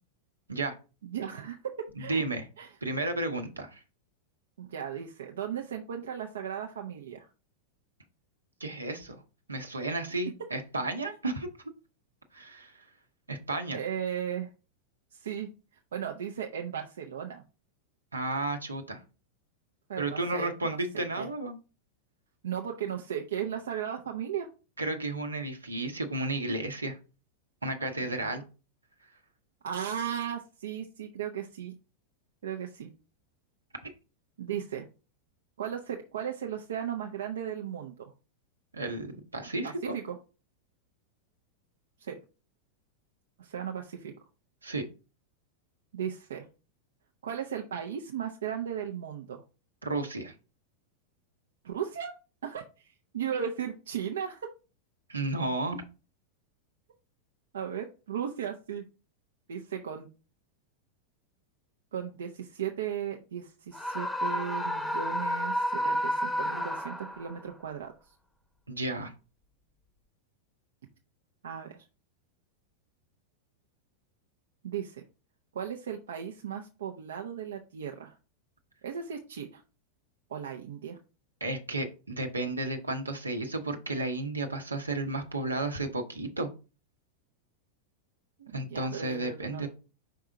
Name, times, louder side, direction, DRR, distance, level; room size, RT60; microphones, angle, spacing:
voice 1, 1.0-2.2 2.6-2.8 4.6-7.3 13.7-14.5 15.1-15.5 15.9-17.4 19.9-21.3 22.4-24.5 28.0-28.4 29.6-31.8 32.4-32.9 34.4-34.9 35.6-38.1 39.6-40.2 42.0-42.2 43.4-44.1 45.9-46.5 47.2-49.4 51.6-52.1 52.4-54.5 57.5-58.8 59.5-60.1 61.9-67.9 71.4-71.8 74.6-75.0 75.5-78.2 78.8-79.6 80.3-81.0 88.4-89.7, right 8 dB, 65° right, 2 dB, 0.7 m, -36 dB
voice 2, 2.0-2.5 2.8-3.8 8.6-9.2 9.5-11.5 12.3-12.7 13.3-13.8 18.1-19.0 20.0-21.6 24.8-27.0 27.6-28.4 38.7-39.9 44.6-44.8 49.8-50.3 55.1-55.8 68.7-69.1 81.4-86.5 88.5-89.7, right 2 dB, 80° right, 5 dB, 1.0 m, -33 dB
Screaming, 63.7-67.4, equal, 5° left, 0.8 m, -31 dB
5.4 x 4.7 x 3.7 m, 0.32 s
figure-of-eight pair, 90°, 0 cm